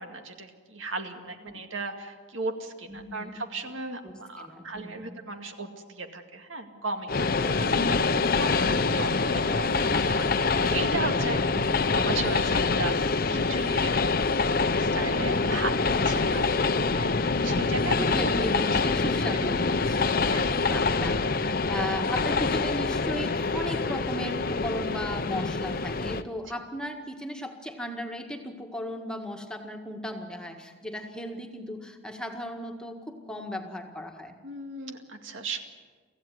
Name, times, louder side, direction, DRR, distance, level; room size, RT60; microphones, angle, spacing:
voice 1, 0.0-7.1 7.3-8.0 8.4-11.4 11.7-14.0 14.6-17.9 18.2-18.3 20.3-20.8 34.4-35.6, right 3 dB, 80° right, 5 dB, 2.2 m, -36 dB
voice 2, 2.9-3.4 4.0-5.2 7.6-8.0 11.4-11.7 17.4-34.4, equal, 5° left, 3 dB, 1.8 m, -36 dB
Train, 7.1-26.2, left 4 dB, 50° left, 0.8 m, -25 dB
25.0 x 15.5 x 9.5 m, 1.5 s
head